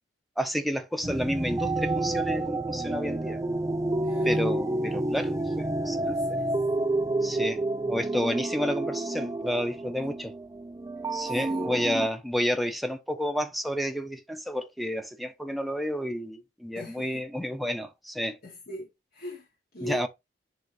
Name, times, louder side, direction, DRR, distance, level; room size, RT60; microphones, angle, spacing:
voice 1, 0.4-3.4 4.2-6.4 7.2-7.6 7.9-10.3 11.1-18.4 19.8-20.1, equal, ahead, 1.0 m, -30 dB
sound 1, 1.0-12.1, right 2 dB, 20° right, 0.4 m, -29 dB
voice 2, 4.0-4.4 6.0-6.5 7.2-7.5 10.0-10.1 11.5-11.8 16.7-17.2 18.4-19.5 19.7-20.1, left 1 dB, 60° left, 2.7 m, -41 dB
10.5 x 3.9 x 3.3 m
head